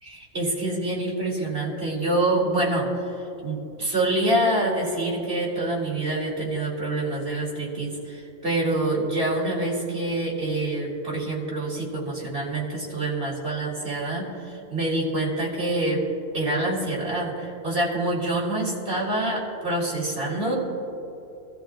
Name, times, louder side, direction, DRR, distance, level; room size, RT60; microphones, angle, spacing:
voice 1, 0.0-16.0 16.3-20.6, right 2 dB, 50° right, -4 dB, 3.7 m, -26 dB
26.0 x 14.0 x 2.5 m, 2.9 s
omnidirectional pair, 1.4 m